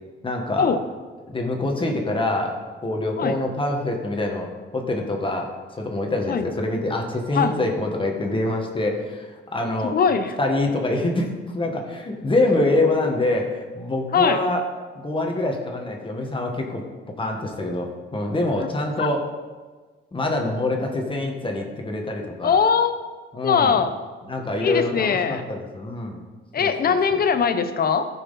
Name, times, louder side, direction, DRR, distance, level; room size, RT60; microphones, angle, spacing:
voice 1, 0.2-0.7 1.3-10.0 10.4-14.6 15.0-16.8 17.2-19.3 20.1-22.6 23.3-23.8 24.3-26.2 26.6-27.2, left 2 dB, 25° left, 1 dB, 1.8 m, -25 dB
voice 2, 7.3-7.7 9.9-10.3 14.1-14.4 18.6-18.7 19.0-19.1 22.4-22.9 23.4-23.9 24.6-25.4 26.5-28.1, left 6 dB, 50° left, 9 dB, 0.9 m, -21 dB
14.5 x 6.2 x 4.2 m, 1.4 s
cardioid pair, 90°, 20 cm